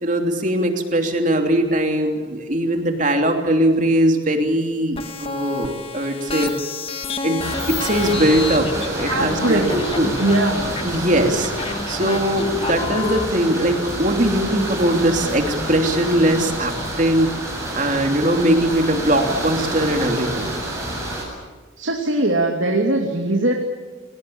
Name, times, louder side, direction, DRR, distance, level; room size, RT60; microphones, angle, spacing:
voice 1, 0.0-6.5 7.2-10.1 10.8-11.5 11.9-17.4 17.7-20.5, right 1 dB, 40° right, 4 dB, 3.1 m, -20 dB
sound 1, 5.0-13.3, left 3 dB, 30° left, 1.7 m, -29 dB
sound 2, 7.4-21.2, right 1 dB, 15° right, 7.7 m, -28 dB
voice 2, 9.1-9.8 10.2-10.7 21.8-23.5, right 1 dB, 75° right, 2 dB, 2.7 m, -20 dB
30.0 x 19.0 x 8.8 m, 1.4 s
head